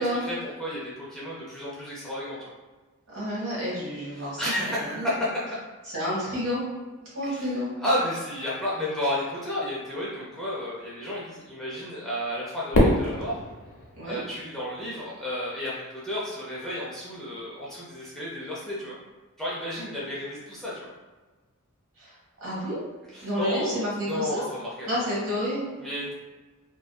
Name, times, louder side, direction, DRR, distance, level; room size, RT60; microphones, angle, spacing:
voice 1, 0.2-2.5 4.2-5.6 7.2-7.5 7.8-13.4 14.1-19.0 19.4-20.9 23.1-25.2 25.8-26.1, left 1 dB, ahead, -8 dB, 0.4 m, -32 dB
voice 2, 3.1-5.1 5.9-6.6 7.0-7.7 14.0-14.2 22.0-22.8 23.2-24.4 24.8-25.7, equal, 60° right, -7 dB, 1.1 m, -30 dB
Fireworks, 12.7-15.1, left 1 dB, 65° left, 0.6 m, -25 dB
2.6 x 2.2 x 2.2 m, 1.3 s
head